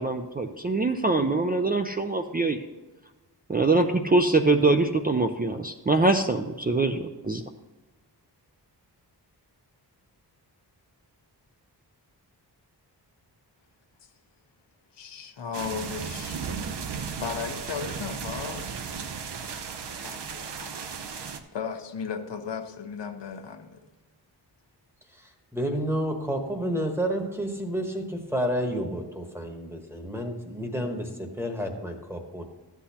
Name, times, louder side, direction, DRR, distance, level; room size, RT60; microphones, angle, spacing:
voice 1, 0.0-2.6 3.5-7.4, right 3 dB, 25° right, 5 dB, 0.4 m, -23 dB
voice 2, 14.9-16.4 17.2-18.7 20.0-20.7 21.1-21.2 21.5-23.8, left 6 dB, 80° left, 6 dB, 0.9 m, -35 dB
sound 1, 15.5-21.4, right 6 dB, 75° right, 0.8 m, -35 dB
voice 3, 25.5-32.4, equal, 5° right, 3 dB, 1.1 m, -30 dB
13.0 x 8.2 x 2.9 m, 1.2 s
wide cardioid pair, 145°, 41 cm